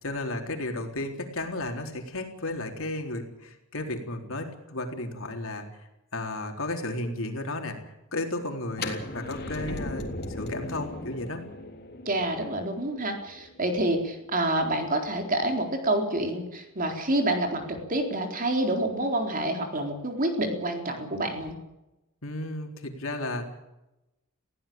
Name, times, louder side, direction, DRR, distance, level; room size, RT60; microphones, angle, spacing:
voice 1, 0.0-5.7 6.1-7.8 8.1-11.5 22.2-23.5, left 2 dB, 70° left, 3 dB, 4.0 m, -33 dB
sound 1, 8.7-14.6, left 2 dB, 50° left, 3.5 m, -38 dB
voice 2, 12.1-21.6, right 1 dB, 40° right, 4 dB, 4.1 m, -28 dB
21.0 x 16.5 x 8.8 m, 0.94 s
head